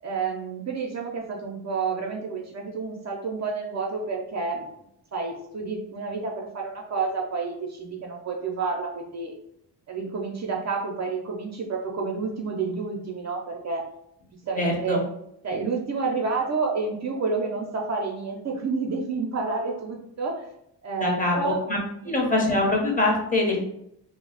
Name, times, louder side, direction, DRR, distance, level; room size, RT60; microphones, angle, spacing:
voice 1, 0.0-4.7 5.1-9.3 9.9-13.8 14.5-15.0 15.4-20.4 20.8-21.6 22.0-22.1, right 4 dB, 40° right, 0 dB, 0.6 m, -29 dB
voice 2, 14.6-15.0 21.0-21.4 21.7-21.8 22.0-23.6, left 2 dB, 20° left, -1 dB, 0.8 m, -23 dB
2.3 x 2.1 x 3.8 m, 0.75 s
cardioid pair, 75°, 41 cm